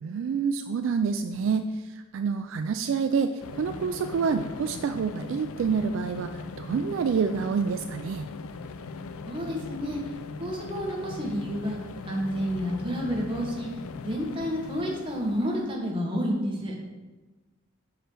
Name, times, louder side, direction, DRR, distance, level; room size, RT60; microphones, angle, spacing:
voice 1, 0.0-8.3, right 5 dB, 65° right, 8 dB, 0.3 m, -28 dB
sound 1, 3.4-15.7, left 4 dB, 85° left, 0.4 m, -40 dB
voice 2, 9.3-10.0 10.4-11.8 12.1-13.7 14.0-16.7, equal, 25° right, -2 dB, 1.3 m, -30 dB
6.6 x 4.9 x 4.5 m, 1.2 s
head